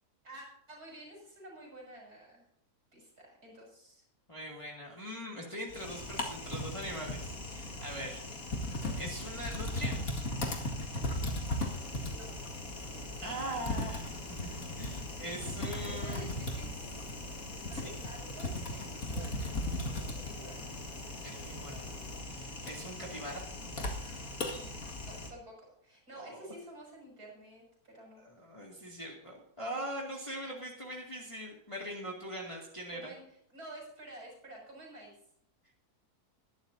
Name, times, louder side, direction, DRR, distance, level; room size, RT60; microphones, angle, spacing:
voice 1, 0.2-2.4 2.9-4.1 12.0-12.3 15.9-17.1 17.7-20.6 25.0-28.2 32.9-35.2, right 1 dB, 75° right, -1 dB, 6.9 m, -50 dB
voice 2, 4.3-8.2 8.9-10.0 13.2-16.4 17.7-18.0 21.2-21.9 22.3-23.4 26.2-26.4 28.2-33.1, equal, 20° left, -2 dB, 2.3 m, -42 dB
Typing, 5.7-25.3, left 1 dB, 60° left, 2.5 m, -38 dB
sound 1, 11.5-22.2, left 2 dB, 80° left, 3.4 m, -51 dB
22.0 x 12.0 x 2.7 m, 0.69 s
omnidirectional pair, 1.7 m